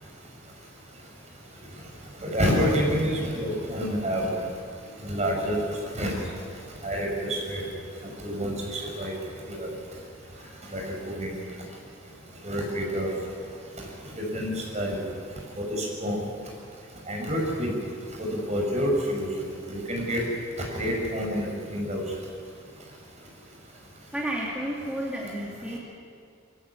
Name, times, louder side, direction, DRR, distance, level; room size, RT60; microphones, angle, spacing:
voice 1, 2.2-4.4 5.0-6.2 6.8-7.6 8.0-9.2 9.5-9.7 10.7-11.4 12.4-13.1 14.2-15.0 15.5-16.2 17.1-17.7 18.2-20.2 20.6-22.2, equal, 35° right, -1 dB, 5.7 m, -28 dB
voice 2, 24.1-25.8, right 1 dB, 5° right, -5 dB, 2.4 m, -31 dB
22.5 x 15.0 x 9.7 m, 2.3 s
head